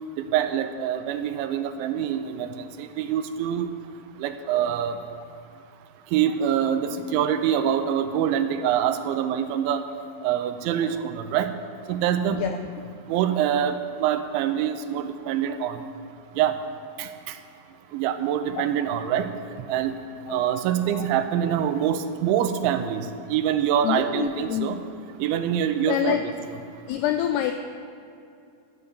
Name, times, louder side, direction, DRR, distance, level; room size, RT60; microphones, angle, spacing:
voice 1, 0.2-3.7 4.2-5.0 6.1-9.8 10.2-11.5 11.9-12.5 13.1-15.8 16.4-16.6 17.0-17.4 17.9-19.3 19.7-20.0 20.3-24.8 25.2-26.3, right 9 dB, 90° right, 9 dB, 3.1 m, -25 dB
voice 2, 12.3-12.7 18.6-18.7 20.3-20.4 20.9-21.1 23.8-24.8 25.9-26.2 26.9-27.5, left 10 dB, 90° left, 7 dB, 2.3 m, -27 dB
13.0 x 7.0 x 8.2 m, 2.5 s
omnidirectional pair, 5.2 m